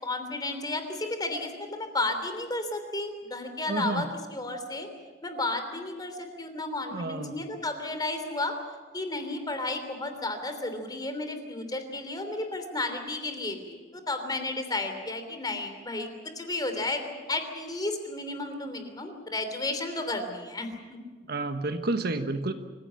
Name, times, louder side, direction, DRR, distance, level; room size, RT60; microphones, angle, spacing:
voice 1, 0.0-4.9 5.2-8.5 8.9-16.1 16.3-21.0, left 2 dB, 20° left, 7 dB, 3.2 m, -33 dB
voice 2, 3.7-4.0 6.9-7.3 21.3-22.5, right 2 dB, 55° right, 7 dB, 1.4 m, -30 dB
25.5 x 16.0 x 8.8 m, 1.4 s
head